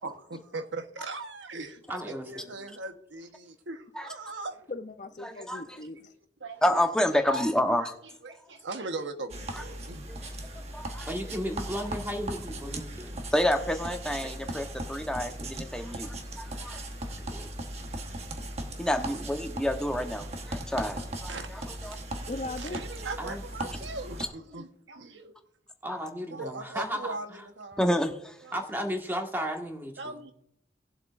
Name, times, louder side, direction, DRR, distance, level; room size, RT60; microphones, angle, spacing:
voice 1, 0.0-4.7 5.3-5.5 6.4-6.6 7.3-7.5 7.8-7.9 8.2-10.1 18.7-18.9 21.3-21.5 22.1-22.3 22.6-25.3 26.3-27.9 28.4-28.5 30.0-30.3, right 3 dB, 90° right, 1.1 m, -39 dB
voice 2, 1.9-2.4 11.0-13.3 17.2-17.4 23.2-23.9 25.8-27.4 28.5-30.2, equal, 10° right, 1.5 m, -35 dB
voice 3, 4.7-6.1 22.3-22.9, left 2 dB, 40° left, 0.6 m, -38 dB
voice 4, 5.2-5.8 6.6-7.9 9.5-9.6 10.1-10.3 10.7-11.1 13.3-16.8 18.8-22.0 25.9-26.0 27.8-28.4, left 1 dB, 5° left, 0.9 m, -29 dB
sound 1, 9.3-24.3, right 1 dB, 35° right, 1.1 m, -38 dB
18.5 x 7.6 x 2.5 m
head